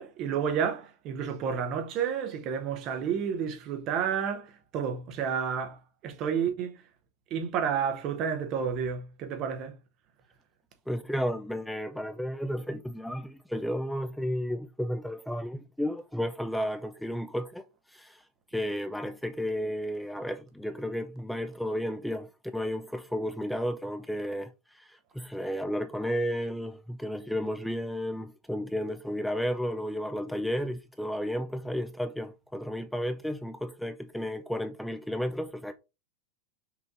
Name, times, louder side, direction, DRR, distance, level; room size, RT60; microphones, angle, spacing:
voice 1, 0.0-6.8 7.3-9.7, right 7 dB, 45° right, 0.8 m, -31 dB
voice 2, 10.9-18.2 18.5-35.7, equal, ahead, 0.3 m, -33 dB
5.6 x 2.6 x 2.5 m
hypercardioid pair, 100°, 0 cm